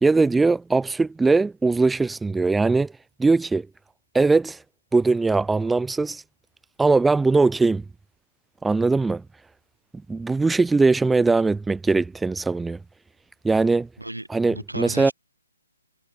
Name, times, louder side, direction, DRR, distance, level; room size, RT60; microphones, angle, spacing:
voice 1, 0.0-2.9 3.2-3.7 4.1-4.6 4.9-6.2 6.8-7.8 8.6-9.2 10.1-12.8 13.4-13.9 14.3-15.1, right 3 dB, 5° right, 0.3 m, -20 dB
voice 2, 14.0-15.1, right 1 dB, 85° right, 5.1 m, -35 dB
figure-of-eight pair, 135°, 0 cm